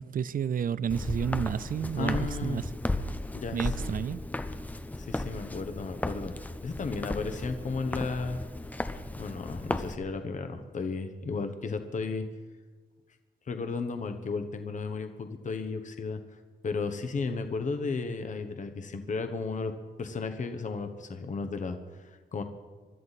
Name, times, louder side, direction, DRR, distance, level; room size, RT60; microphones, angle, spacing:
voice 1, 0.0-2.7 3.5-4.2, right 8 dB, 50° right, 0.4 m, -31 dB
Walk footsteps, 0.9-9.9, left 1 dB, 10° left, 0.6 m, -35 dB
voice 2, 2.0-2.7 3.3-3.9 5.0-6.3 6.6-8.4 9.2-12.3 13.5-16.2 16.6-19.7 20.0-22.4, left 4 dB, 45° left, 1.1 m, -34 dB
24.5 x 13.0 x 4.1 m
wide cardioid pair, 170°, 18 cm